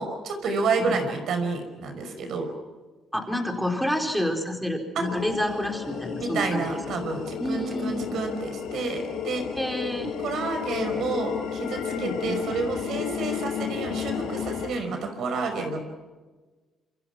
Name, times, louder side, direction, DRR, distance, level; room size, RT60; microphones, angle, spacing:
voice 1, 0.0-2.5 5.0-5.1 6.2-9.5 10.2-15.8, right 4 dB, 70° right, 6 dB, 5.4 m, -29 dB
voice 2, 3.1-6.7 7.4-8.2 9.5-10.2 11.9-12.4, left 1 dB, ahead, 3 dB, 4.4 m, -29 dB
sound 1, 5.0-14.7, left 8 dB, 85° left, 7.3 m, -33 dB
27.0 x 25.0 x 6.1 m, 1.3 s
cardioid pair, 90°, 0 cm